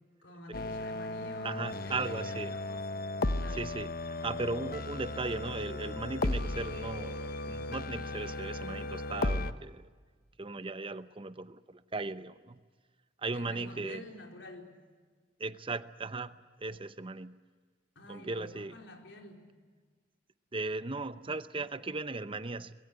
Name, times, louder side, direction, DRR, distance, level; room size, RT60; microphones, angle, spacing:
voice 1, 0.2-3.7 13.3-14.7 17.9-19.5, left 1 dB, 90° left, 4.4 m, -49 dB
sound 1, 0.5-9.5, left 2 dB, 55° left, 1.0 m, -35 dB
voice 2, 1.4-2.6 3.5-3.9 4.2-9.9 10.4-12.6 13.2-14.1 15.4-17.4 18.0-18.8 20.5-22.7, right 3 dB, 30° right, 0.8 m, -37 dB
24.5 x 21.5 x 9.5 m
head